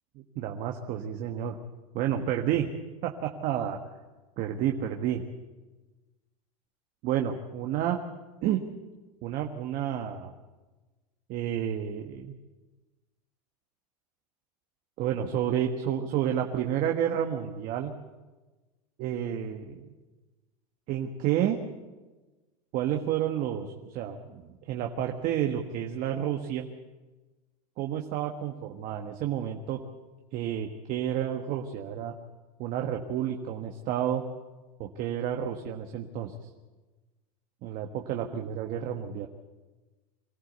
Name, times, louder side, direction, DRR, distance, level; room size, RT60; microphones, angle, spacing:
voice 1, 0.1-1.6 1.9-2.7 3.0-3.8 4.4-5.2 7.0-8.0 8.4-8.6 9.2-10.3 11.3-12.3 15.0-17.9 19.0-19.9 20.9-21.6 22.7-26.7 27.8-29.8 30.3-32.1 32.6-34.2 34.8-36.3 37.6-39.3, right 10 dB, 50° right, 3 dB, 1.6 m, -30 dB
24.0 x 14.5 x 8.1 m, 1.2 s
supercardioid pair, 120°, 19 cm